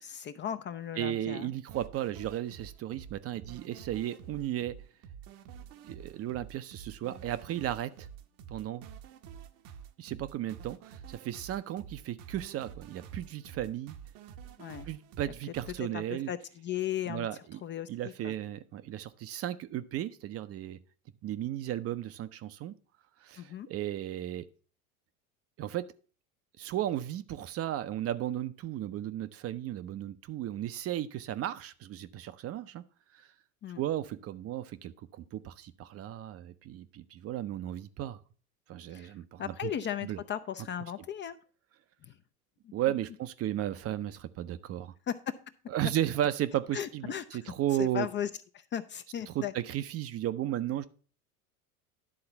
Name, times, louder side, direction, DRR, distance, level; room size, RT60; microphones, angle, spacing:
voice 1, 0.0-1.5 14.6-14.9 15.9-17.3 17.6-18.3 23.4-23.7 33.6-33.8 38.9-39.1 39.4-41.4 42.1-42.2 42.6-42.7 45.1-45.3 46.7-47.4 47.8-48.3 48.5-49.5, left 10 dB, 30° left, 11 dB, 0.4 m, -36 dB
voice 2, 1.0-4.8 5.8-8.1 8.5-8.8 10.0-14.0 14.9-16.3 17.1-17.6 17.9-20.8 21.2-22.7 23.2-24.4 25.6-25.9 26.6-32.8 33.1-33.3 33.8-38.2 38.7-39.7 40.0-40.2 42.7-44.9 45.7-48.1 49.3-50.9, right 12 dB, 35° right, 13 dB, 0.5 m, -35 dB
sound 1, 1.7-15.8, right 8 dB, 55° right, 0.9 m, -49 dB
11.0 x 3.9 x 5.6 m, 0.39 s
hypercardioid pair, 80°, 43 cm